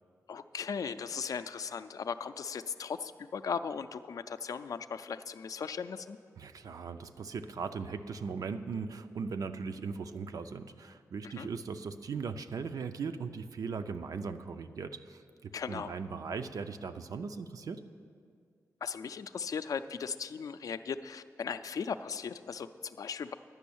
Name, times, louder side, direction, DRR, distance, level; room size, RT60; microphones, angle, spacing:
voice 1, 0.3-6.2 11.4-11.5 15.5-15.9 18.8-23.3, left 6 dB, 75° left, 11 dB, 0.4 m, -37 dB
voice 2, 6.4-17.8, right 5 dB, 85° right, 9 dB, 0.5 m, -39 dB
10.5 x 6.2 x 8.5 m, 2.2 s
wide cardioid pair, 135°, 6 cm